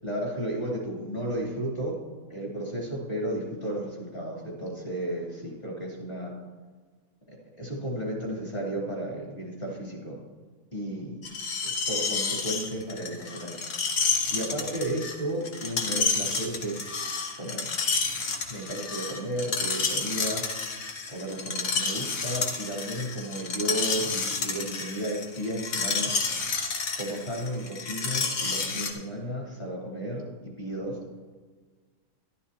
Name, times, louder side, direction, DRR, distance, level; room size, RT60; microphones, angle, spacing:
voice 1, 0.0-2.0 2.3-6.3 7.6-10.2 10.7-11.2 11.6-13.6 14.3-16.9 17.4-17.7 18.5-20.4 21.1-26.1 27.0-31.0, right 1 dB, 40° left, -3 dB, 3.0 m, -33 dB
Screech, 11.2-28.9, left 4 dB, 65° left, 1.5 m, -30 dB
12.5 x 12.0 x 2.9 m, 1.4 s
omnidirectional pair, 1.5 m